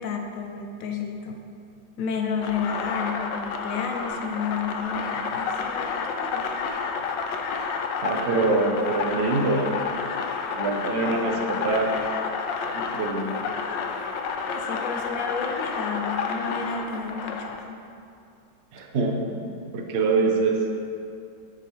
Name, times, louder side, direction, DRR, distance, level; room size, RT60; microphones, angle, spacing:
voice 1, 0.0-1.4 2.0-6.5 14.5-17.8, left 5 dB, 65° left, 3 dB, 0.9 m, -31 dB
sound 1, 2.4-17.6, left 5 dB, 80° left, 1.3 m, -30 dB
voice 2, 8.0-9.7 10.5-11.9 12.7-13.5 18.7-19.4 19.7-20.6, right 3 dB, 55° right, 2 dB, 0.7 m, -24 dB
7.3 x 5.0 x 4.5 m, 2.5 s
omnidirectional pair, 2.0 m